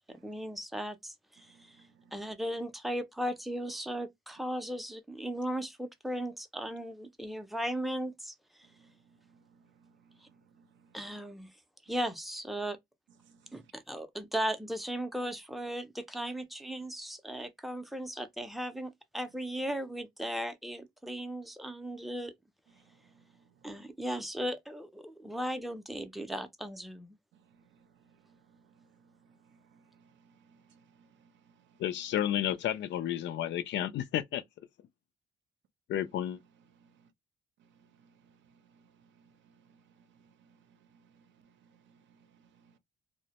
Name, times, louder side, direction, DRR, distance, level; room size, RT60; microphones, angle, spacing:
voice 1, 0.1-1.8 2.1-8.3 10.9-11.5 11.9-12.8 13.5-22.3 23.6-27.2, equal, ahead, 0.4 m, -37 dB
voice 2, 1.5-1.9 8.8-8.9 9.3-10.2 10.6-10.7 13.3-13.6 29.5-30.1 30.7-31.3 36.8-36.9 38.0-38.1 38.7-38.8 39.7-39.8, right 5 dB, 70° right, 0.6 m, -63 dB
voice 3, 31.8-34.4 35.9-36.4, left 11 dB, 65° left, 0.4 m, -31 dB
2.1 x 2.0 x 2.8 m
cardioid pair, 90°, 20 cm